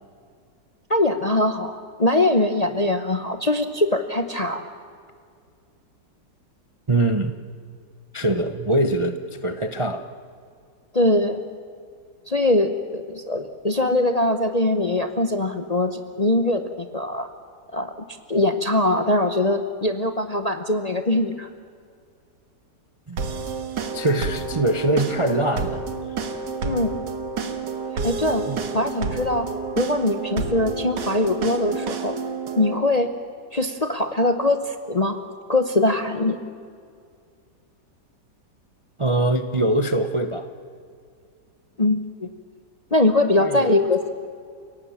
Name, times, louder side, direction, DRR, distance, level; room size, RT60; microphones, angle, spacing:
voice 1, 0.9-4.7 10.9-11.4 12.3-17.3 17.7-21.5 26.6-27.0 28.0-28.5 28.7-29.5 29.8-32.2 32.6-33.1 33.5-35.2 35.5-36.4 41.8-42.3 42.9-44.3, left 2 dB, 30° left, 7 dB, 0.7 m, -22 dB
voice 2, 6.9-7.3 8.1-10.0 23.1-23.2 23.9-25.8 28.5-28.6 39.0-40.5 43.4-43.7, right 1 dB, 30° right, 8 dB, 0.6 m, -23 dB
sound 1, 23.2-32.8, right 4 dB, 75° right, 2.1 m, -29 dB
30.0 x 17.5 x 7.2 m, 2.2 s
omnidirectional pair, 1.9 m